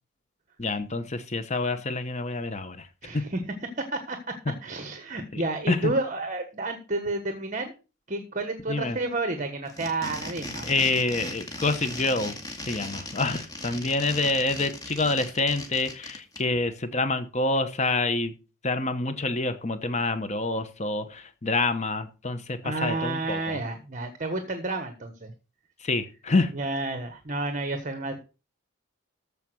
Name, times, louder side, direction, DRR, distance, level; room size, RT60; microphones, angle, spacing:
voice 1, 0.6-2.9 5.3-5.9 8.7-9.0 10.6-12.3 12.6-18.3 18.6-23.6 25.8-26.5, left 3 dB, 35° left, 10 dB, 1.0 m, -27 dB
voice 2, 3.0-3.4 3.8-4.4 4.6-7.7 8.1-10.7 13.7-13.9 22.6-25.3 26.5-28.2, right 2 dB, 40° right, 7 dB, 1.3 m, -31 dB
sound 1, 9.6-16.4, left 2 dB, 20° left, 2.3 m, -38 dB
14.5 x 5.0 x 6.2 m, 0.33 s
head